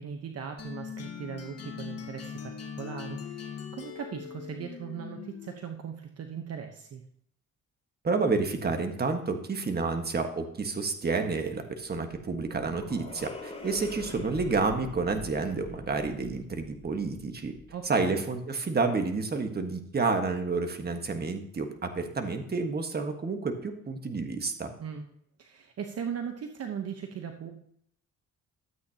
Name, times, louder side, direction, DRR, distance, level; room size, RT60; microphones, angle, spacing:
voice 1, 0.0-7.0 17.7-18.2 24.8-25.0 25.4-27.6, right 7 dB, 55° right, 4 dB, 1.0 m, -39 dB
sound 1, 0.6-5.7, left 7 dB, 55° left, 1.6 m, -41 dB
voice 2, 8.0-17.5 17.8-24.7, right 4 dB, 30° right, 6 dB, 1.5 m, -30 dB
sound 2, 11.9-18.0, left 3 dB, 20° left, 3.0 m, -46 dB
13.0 x 8.4 x 2.9 m, 0.70 s
cardioid pair, 90°, 30 cm